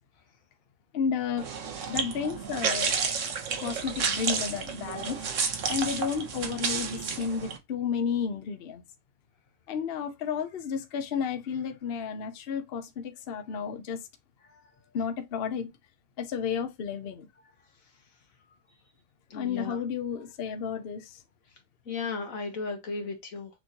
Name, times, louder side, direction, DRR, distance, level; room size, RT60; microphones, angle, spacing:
voice 1, 0.9-1.5 1.9-2.9 3.6-5.2 5.7-8.8 9.7-14.0 14.9-15.7 16.2-17.3 19.3-21.2, left 7 dB, 55° left, 0.8 m, -32 dB
sound 1, 1.4-7.6, right 6 dB, 70° right, 1.2 m, -31 dB
voice 2, 19.3-19.8 21.9-23.5, left 4 dB, 85° left, 1.7 m, -35 dB
6.2 x 3.0 x 2.8 m
omnidirectional pair, 1.4 m